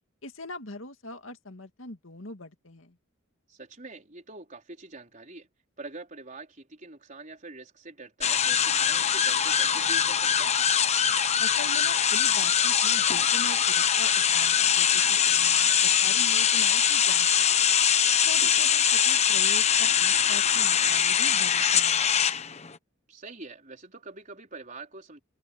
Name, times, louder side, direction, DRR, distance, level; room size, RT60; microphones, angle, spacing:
voice 1, 0.2-3.0 11.4-17.6 18.2-22.4, left 2 dB, 75° left, 2.3 m, -42 dB
voice 2, 3.5-5.5 5.8-10.5 18.3-18.5 23.1-25.2, right 3 dB, 40° right, 4.6 m, -44 dB
sound 1, 8.2-22.7, left 8 dB, 35° left, 1.0 m, -23 dB
head